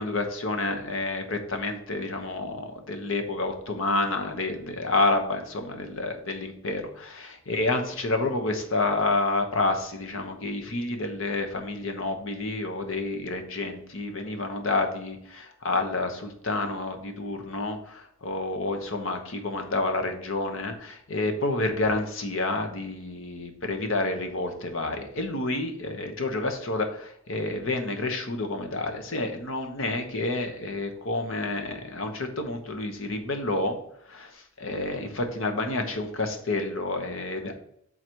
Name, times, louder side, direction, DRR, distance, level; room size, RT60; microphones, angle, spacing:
voice 1, 0.0-33.8 34.1-37.5, left 2 dB, 70° left, 5 dB, 1.0 m, -29 dB
7.6 x 4.0 x 4.6 m, 0.72 s
head